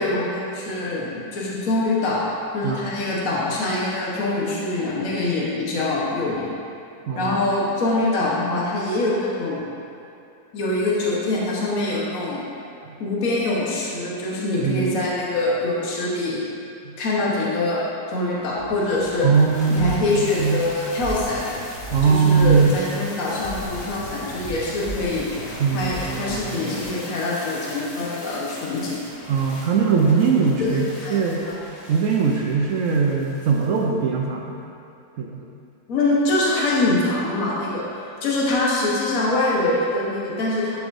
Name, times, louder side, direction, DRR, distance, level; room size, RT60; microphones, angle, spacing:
voice 1, 0.0-2.2 2.5-6.5 7.1-9.6 10.5-12.4 13.0-16.4 17.0-19.2 19.7-21.4 22.1-25.3 25.7-29.0 30.6-31.2 31.4-31.5 35.9-40.8, left 2 dB, 55° left, -6 dB, 1.5 m, -24 dB
voice 2, 7.1-7.4 12.8-13.0 14.6-15.0 16.8-17.0 19.2-20.6 21.9-22.8 25.6-26.7 29.3-31.5 31.9-34.6 35.2-35.4, right 5 dB, 65° right, -1 dB, 0.9 m, -21 dB
sound 1, 18.5-33.8, equal, 40° left, 1.5 m, -36 dB
11.0 x 4.9 x 2.6 m, 2.6 s
omnidirectional pair, 1.8 m